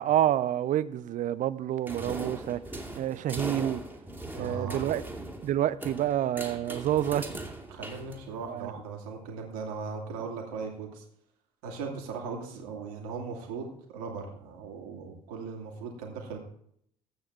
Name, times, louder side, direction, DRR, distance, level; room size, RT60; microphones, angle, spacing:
voice 1, 0.0-2.6 2.9-3.8 4.3-5.0 5.4-7.5 8.5-8.7, right 12 dB, 40° right, 0.6 m, -28 dB
sound 1, 1.9-8.6, right 1 dB, 10° right, 2.4 m, -40 dB
voice 2, 4.4-4.8 7.7-11.0 11.6-16.4, right 5 dB, 65° right, 2.7 m, -38 dB
14.5 x 8.8 x 4.5 m
figure-of-eight pair, 55°, 19 cm